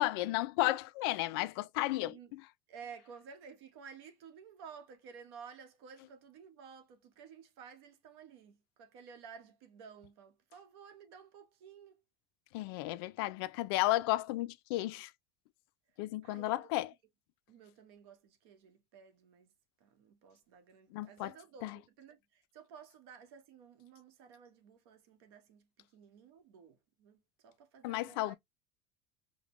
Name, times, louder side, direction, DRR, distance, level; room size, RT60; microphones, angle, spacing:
voice 1, 0.0-2.1 12.5-15.1 16.0-16.9 20.9-21.3 21.6-21.8 27.8-28.4, left 17 dB, 65° left, 0.4 m, -33 dB
voice 2, 2.7-12.0 16.2-16.7 17.5-19.5 19.8-28.4, right 6 dB, 70° right, 1.1 m, -54 dB
5.1 x 2.1 x 3.0 m
cardioid pair, 180°, 13 cm